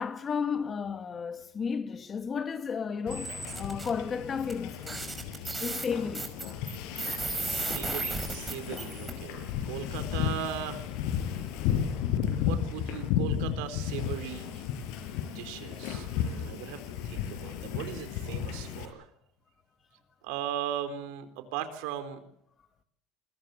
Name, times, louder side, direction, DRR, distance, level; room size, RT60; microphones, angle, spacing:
voice 1, 0.0-5.1 5.6-6.3, left 6 dB, 30° left, 2.0 m, -33 dB
Wind / Ocean, 3.1-18.9, left 9 dB, 75° left, 6.4 m, -34 dB
sound 1, 3.1-3.9 4.5-4.6 4.8-9.1, right 3 dB, 15° right, 5.4 m, -35 dB
voice 2, 7.4-10.8 12.4-14.6 15.3-19.0 20.2-22.2, right 10 dB, 80° right, 4.1 m, -38 dB
28.5 x 22.0 x 7.9 m
cardioid pair, 130°, 0 cm